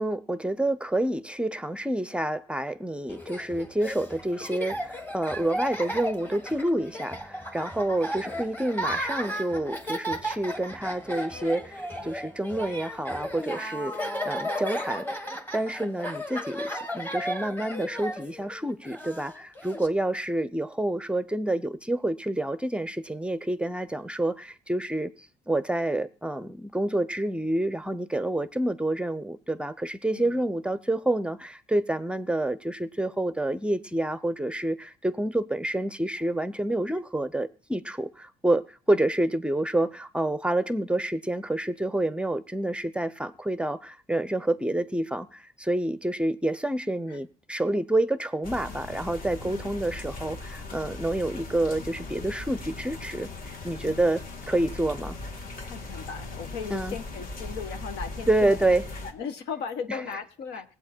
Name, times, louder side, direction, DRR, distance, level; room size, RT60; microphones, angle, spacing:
voice 1, 0.0-55.2 56.7-57.0 58.3-58.8 59.9-60.0, right 1 dB, 5° right, 0.6 m, -28 dB
Laughter, 3.1-19.9, equal, 10° left, 1.5 m, -34 dB
sound 1, 48.4-59.1, left 2 dB, 55° left, 2.1 m, -39 dB
voice 2, 49.4-49.8 53.8-54.0 55.6-58.6 59.0-60.7, left 6 dB, 85° left, 1.4 m, -37 dB
19.0 x 8.2 x 4.4 m
cardioid pair, 110°, 17 cm